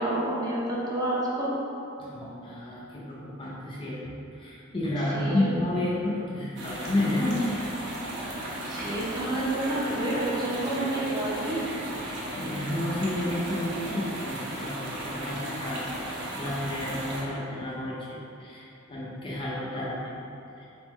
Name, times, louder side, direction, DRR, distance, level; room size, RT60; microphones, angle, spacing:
voice 1, 0.0-1.5 2.2-2.3 5.2-5.6 8.3-11.6, right 1 dB, 20° right, -6 dB, 0.6 m, -29 dB
voice 2, 2.0-7.5 12.4-15.9 16.3-20.1 20.6-20.7, left 1 dB, 25° left, -6 dB, 0.4 m, -31 dB
sound 1, 6.6-17.2, right 1 dB, 55° right, 0.8 m, -35 dB
4.2 x 3.5 x 3.1 m, 2.8 s
head